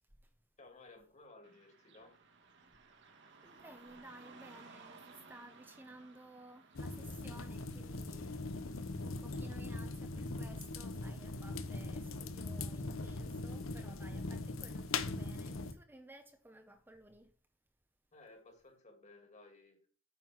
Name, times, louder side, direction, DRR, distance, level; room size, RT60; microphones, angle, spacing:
voice 1, 0.6-2.2 18.1-20.0, left 2 dB, 35° left, 2.3 m, -58 dB
Car passing by / Traffic noise roadway noise, 1.4-10.5, right 4 dB, 60° right, 1.6 m, -60 dB
voice 2, 3.4-8.4 8.7-17.3, right 1 dB, 10° right, 0.7 m, -56 dB
sound 1, 6.8-15.7, left 3 dB, 85° left, 0.9 m, -41 dB
9.0 x 5.8 x 6.2 m
head